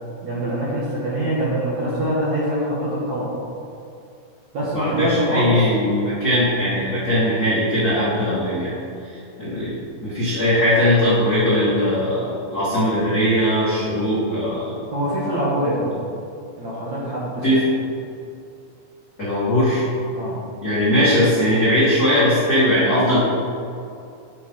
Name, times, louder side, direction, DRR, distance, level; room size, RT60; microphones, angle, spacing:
voice 1, 0.2-3.3 4.5-5.6 14.9-16.0 16.6-17.5 20.1-20.4, right 1 dB, 60° right, -7 dB, 2.0 m, -24 dB
voice 2, 4.7-8.7 9.0-9.8 10.0-14.7 17.4-17.6 19.2-19.8 20.6-23.2, equal, 45° left, -10 dB, 1.2 m, -19 dB
9.7 x 8.0 x 3.8 m, 2.6 s
omnidirectional pair, 5.0 m